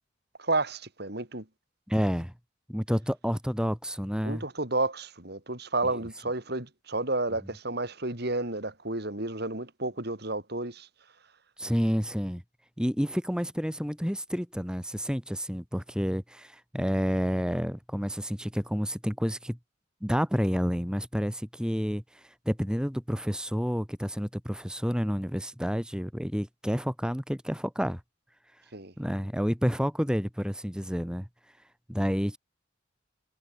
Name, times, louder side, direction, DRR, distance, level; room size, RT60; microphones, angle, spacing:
voice 1, 0.4-1.4 4.2-10.9 28.7-28.9, right 2 dB, 55° right, 4.5 m, -31 dB
voice 2, 1.9-2.3 2.7-4.4 5.9-6.0 11.6-12.4 12.8-19.6 20.0-28.0 29.0-31.3 31.9-32.4, equal, 5° right, 4.4 m, -29 dB
head